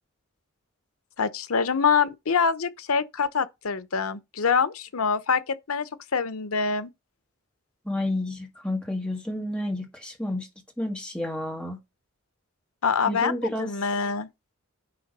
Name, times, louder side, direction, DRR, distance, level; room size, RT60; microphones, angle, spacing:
voice 1, 1.2-6.9 12.8-14.3, left 5 dB, 85° left, 0.8 m, -25 dB
voice 2, 7.9-10.5 10.8-11.8 13.0-13.7, left 1 dB, 5° left, 1.8 m, -30 dB
10.0 x 3.6 x 5.4 m
head